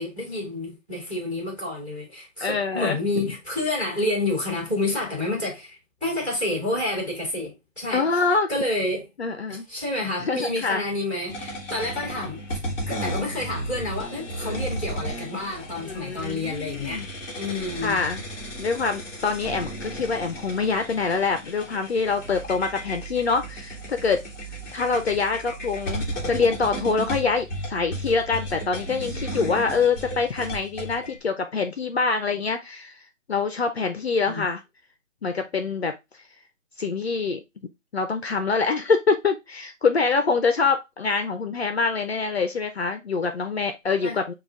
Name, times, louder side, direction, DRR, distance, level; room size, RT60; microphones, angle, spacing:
voice 1, 0.0-8.0 8.5-9.1 9.5-12.4 12.9-17.1 17.4-18.0 34.3-34.4 44.0-44.2, left 2 dB, 5° right, 1.6 m, -29 dB
voice 2, 2.4-3.0 3.2-3.3 7.9-8.5 9.2-9.7 10.2-10.8 15.8-17.1 17.8-18.2 18.6-24.2 24.7-32.9 33.3-34.6 35.2-35.9 36.8-37.4 37.9-44.3, left 4 dB, 55° left, 0.6 m, -25 dB
sound 1, 11.3-31.2, equal, 15° left, 0.9 m, -34 dB
sound 2, 22.0-30.3, right 8 dB, 25° right, 0.9 m, -43 dB
5.2 x 2.4 x 3.5 m
figure-of-eight pair, 155°, 39 cm